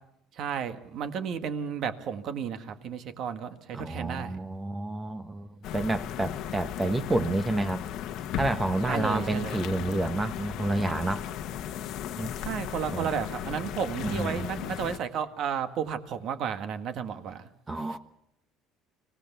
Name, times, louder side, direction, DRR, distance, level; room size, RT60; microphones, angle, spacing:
voice 1, 0.4-4.4 8.9-9.6 12.4-17.5, right 7 dB, 55° right, 9 dB, 1.7 m, -33 dB
voice 2, 3.7-7.8 8.4-11.3 12.2-12.3 12.9-13.1 14.0-14.5 17.7-18.0, right 2 dB, 15° right, 10 dB, 0.9 m, -29 dB
sound 1, 5.6-15.0, left 10 dB, 65° left, 1.1 m, -36 dB
25.5 x 18.0 x 6.9 m, 0.78 s
cardioid pair, 120°, 0 cm